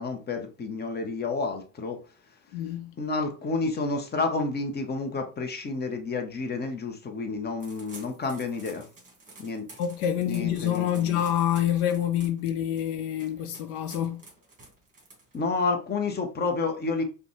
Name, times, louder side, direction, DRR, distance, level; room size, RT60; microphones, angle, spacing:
voice 1, 0.0-2.0 3.0-8.9 9.4-9.8 10.2-11.2 15.3-17.0, left 3 dB, 20° left, 0.9 m, -30 dB
voice 2, 2.5-2.9 9.8-14.2, left 10 dB, 65° left, 0.6 m, -27 dB
sound 1, 7.6-15.6, right 3 dB, 15° right, 1.8 m, -51 dB
5.0 x 2.4 x 3.1 m
hypercardioid pair, 90°, 48 cm